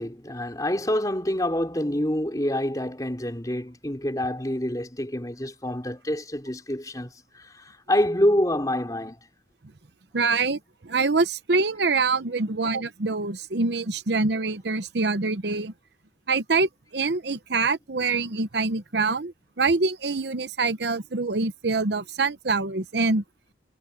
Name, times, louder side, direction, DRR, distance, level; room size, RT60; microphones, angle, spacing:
voice 1, 0.0-9.2, left 1 dB, 20° left, 3.6 m, -27 dB
voice 2, 10.1-15.7 16.3-23.2, right 3 dB, 65° right, 0.8 m, -25 dB
head